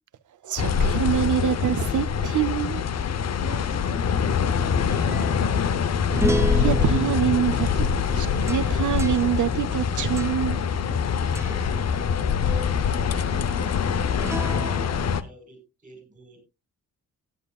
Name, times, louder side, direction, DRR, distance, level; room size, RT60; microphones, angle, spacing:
voice 1, 0.4-2.8 6.6-10.6, right 10 dB, 70° right, 0.7 m, -25 dB
sound 1, 0.6-15.2, left 7 dB, 55° left, 0.8 m, -24 dB
voice 2, 3.4-5.7 11.4-14.1, left 2 dB, 30° left, 5.8 m, -42 dB
sound 2, 4.7-11.0 11.4-11.7 14.1-15.1, right 1 dB, 10° right, 0.5 m, -32 dB
voice 3, 15.2-16.4, right 1 dB, 25° right, 4.8 m, -50 dB
15.5 x 10.5 x 2.3 m
wide cardioid pair, 145°, 32 cm